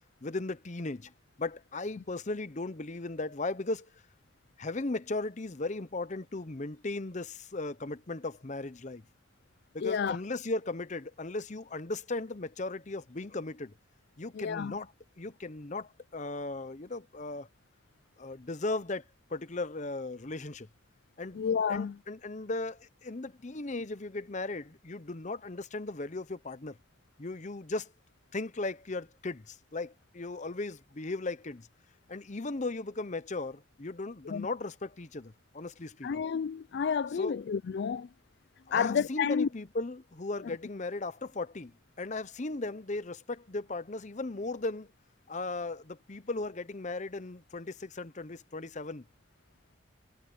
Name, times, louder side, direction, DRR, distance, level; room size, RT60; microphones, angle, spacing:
voice 1, 0.2-1.1 1.4-3.9 4.6-9.0 9.7-13.7 14.2-14.9 15.2-17.5 18.2-19.0 19.3-20.7 21.2-21.4 21.7-26.8 27.2-27.9 28.3-31.7 32.1-36.1 37.1-37.3 38.7-44.9 45.3-49.0, left 2 dB, 35° left, 0.7 m, -37 dB
voice 2, 9.8-10.2 14.3-14.7 21.3-22.0 34.3-34.5 36.0-38.1 38.7-39.5, left 6 dB, 50° left, 0.3 m, -30 dB
head